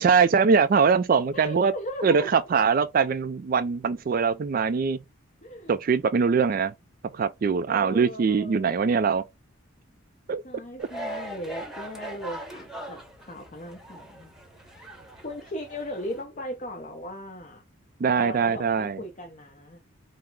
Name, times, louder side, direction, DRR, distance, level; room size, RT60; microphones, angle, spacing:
voice 1, 0.0-1.7 2.0-5.0 5.7-6.7 7.1-9.2 10.3-10.4 18.0-19.0, right 5 dB, 45° right, 0.3 m, -22 dB
voice 2, 1.3-2.3 5.4-5.8 7.7-8.8 10.4-14.3 14.6-15.0 15.2-17.6 18.2-19.8, equal, 40° left, 0.7 m, -38 dB
sound 1, 10.8-16.2, right 1 dB, ahead, 0.9 m, -40 dB
5.6 x 2.0 x 4.6 m
head